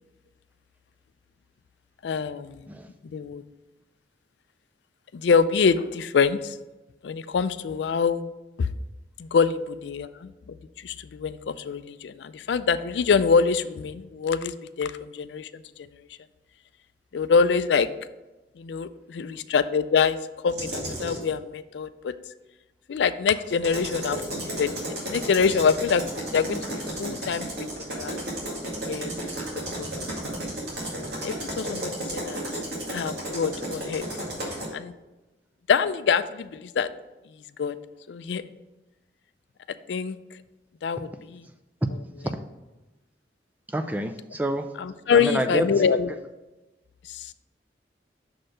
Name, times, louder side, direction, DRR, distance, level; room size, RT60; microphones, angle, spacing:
voice 1, 2.0-2.6 3.1-3.4 5.1-6.6 7.0-8.3 8.6-8.7 9.2-10.3 10.8-15.5 17.1-17.9 18.6-20.2 20.4-22.1 22.9-26.0 26.3-27.5 27.8-28.6 28.9-29.1 29.8-29.9 31.2-32.6 32.9-34.0 34.7-34.9 35.7-36.9 37.6-37.8 38.1-38.4 39.9-40.2 40.8-41.5 44.8-46.1 47.1-47.3, left 5 dB, 80° left, 13 dB, 0.4 m, -25 dB
sound 1, 20.5-21.2 23.5-34.7, right 1 dB, 70° right, 2.0 m, -33 dB
voice 2, 43.7-44.7 45.1-45.6, right 1 dB, 10° right, 6 dB, 0.4 m, -28 dB
6.5 x 4.4 x 4.9 m, 1.1 s
head